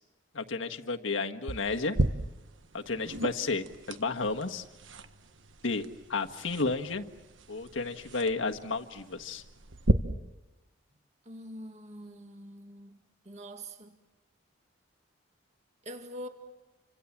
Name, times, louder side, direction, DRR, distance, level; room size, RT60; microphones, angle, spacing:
voice 1, 0.3-2.0 2.7-4.7 5.6-7.0 7.5-9.4, left 3 dB, 75° left, 1.6 m, -32 dB
sound 1, 1.5-9.9, right 1 dB, 70° right, 1.4 m, -35 dB
voice 2, 11.3-13.0 13.3-14.0 15.8-16.3, equal, 35° right, 2.2 m, -44 dB
30.0 x 26.0 x 7.4 m
head